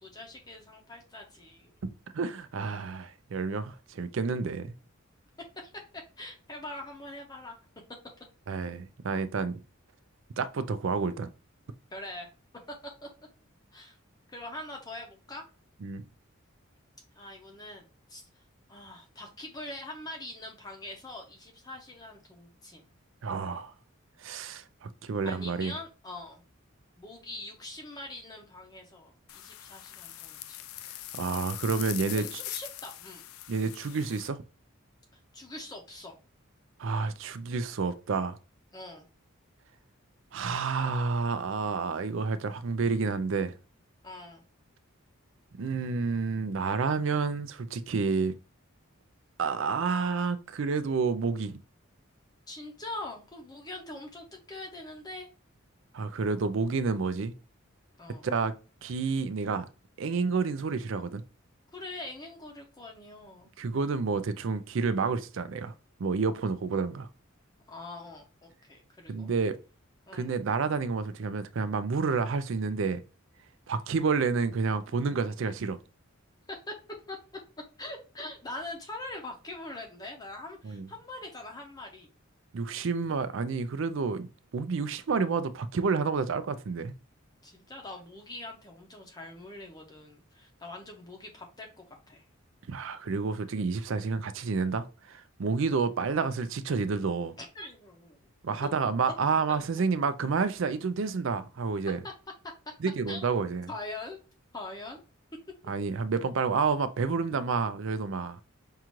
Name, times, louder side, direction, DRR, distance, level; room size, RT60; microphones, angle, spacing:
voice 1, 0.0-1.8 5.6-5.7 6.2-7.6 11.9-12.3 12.8-12.9 13.7-14.0 14.3-15.4 17.2-17.8 18.1-18.2 18.7-22.8 25.2-26.4 27.0-30.6 32.1-33.2 35.3-36.2 38.7-39.1 44.0-44.4 52.5-55.3 58.0-58.3 61.7-63.5 67.7-68.2 68.6-69.3 70.1-70.3 76.7-76.8 77.1-77.2 77.8-82.1 87.4-92.2 97.4-98.2 98.8-98.9 103.1-103.4 103.7-104.2 104.5-105.0, left 2 dB, 20° left, 0.6 m, -43 dB
voice 2, 2.1-4.7 8.5-9.6 10.4-11.3 15.8-16.0 23.2-23.7 24.2-25.8 31.1-32.4 33.5-34.4 36.8-38.4 40.3-43.5 45.6-48.3 49.4-51.6 55.9-57.3 58.2-58.5 58.8-59.7 60.0-61.2 63.6-65.7 66.0-67.1 69.1-69.6 70.1-73.0 73.7-75.8 80.6-80.9 82.5-86.9 92.7-97.4 98.4-102.0 102.8-103.7 105.7-108.4, right 4 dB, 60° right, 0.4 m, -29 dB
sound 1, 29.3-34.3, left 14 dB, 80° left, 0.4 m, -41 dB
5.5 x 2.5 x 3.0 m
head